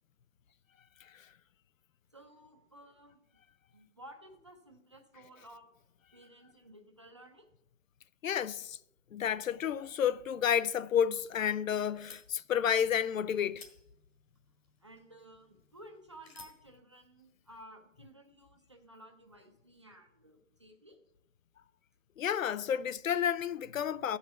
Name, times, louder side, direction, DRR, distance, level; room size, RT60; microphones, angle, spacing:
voice 1, 2.1-3.2 3.7-5.7 6.1-7.5 14.8-21.0, right 1 dB, 25° right, 0.6 m, -55 dB
voice 2, 8.2-8.8 9.1-13.7 22.2-24.2, left 8 dB, 85° left, 0.6 m, -31 dB
sound 1, 10.8-16.7, left 4 dB, 50° left, 1.9 m, -59 dB
13.0 x 5.6 x 5.7 m
hypercardioid pair, 170°, 39 cm